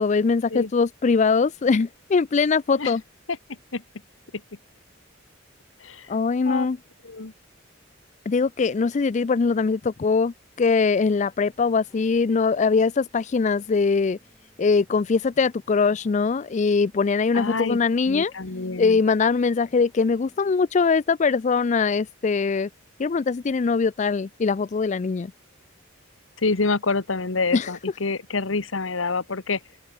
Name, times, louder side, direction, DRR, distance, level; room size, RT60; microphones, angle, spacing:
voice 1, 0.0-3.0 6.1-6.8 8.3-14.2 14.6-18.3 18.8-22.7 23.0-25.3 27.5-27.7, left 4 dB, 35° left, 0.4 m, -22 dB
voice 2, 3.5-3.8 4.3-4.4 5.8-6.1 6.4-6.7 7.0-7.3 17.3-17.8 18.1-19.0 26.4-29.6, left 3 dB, 80° left, 1.3 m, -27 dB
sound 1, 10.7-20.7, equal, 5° left, 7.1 m, -62 dB
head